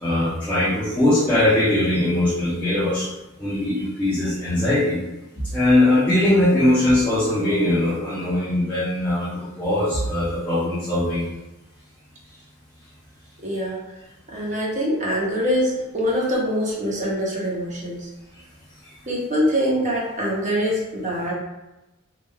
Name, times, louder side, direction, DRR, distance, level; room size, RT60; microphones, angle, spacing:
voice 1, 0.0-3.1 3.4-5.0 5.4-11.2, left 1 dB, 10° left, -11 dB, 0.6 m, -20 dB
voice 2, 13.4-13.8 14.3-18.1 19.1-21.3, equal, 35° right, -4 dB, 0.8 m, -24 dB
3.1 x 2.4 x 2.3 m, 1.0 s
head